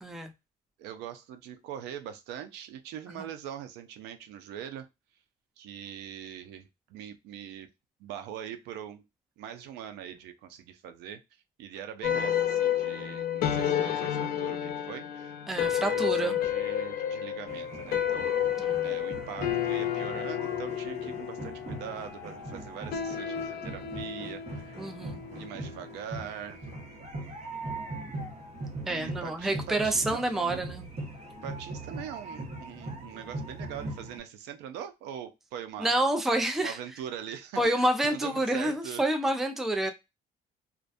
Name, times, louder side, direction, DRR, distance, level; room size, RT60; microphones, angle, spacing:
voice 1, 0.0-0.3 3.2-3.3 15.5-16.4 18.6-18.9 24.8-25.2 28.9-30.9 35.8-36.8 37.6-39.9, right 1 dB, ahead, 0.4 m, -28 dB
voice 2, 0.8-4.9 5.6-7.7 8.0-9.0 9.4-11.2 11.6-18.3 18.8-24.8 25.3-26.7 28.9-30.6 31.4-35.9 36.6-39.0, right 9 dB, 90° right, 0.5 m, -42 dB
sound 1, 12.0-26.5, left 9 dB, 65° left, 0.5 m, -31 dB
sound 2, 17.5-34.2, right 2 dB, 40° right, 1.1 m, -41 dB
2.4 x 2.2 x 2.4 m
cardioid pair, 110°, 17 cm